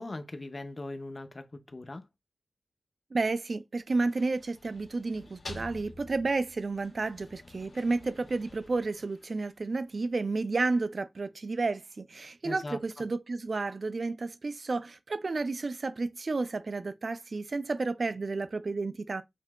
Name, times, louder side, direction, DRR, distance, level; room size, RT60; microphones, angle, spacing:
voice 1, 0.0-2.1 12.4-13.0, left 2 dB, 35° left, 0.6 m, -40 dB
voice 2, 3.1-19.2, right 3 dB, 50° right, 0.4 m, -31 dB
sound 1, 3.9-9.8, left 2 dB, 80° left, 1.6 m, -49 dB
5.9 x 2.7 x 2.3 m
wide cardioid pair, 100°, 0 cm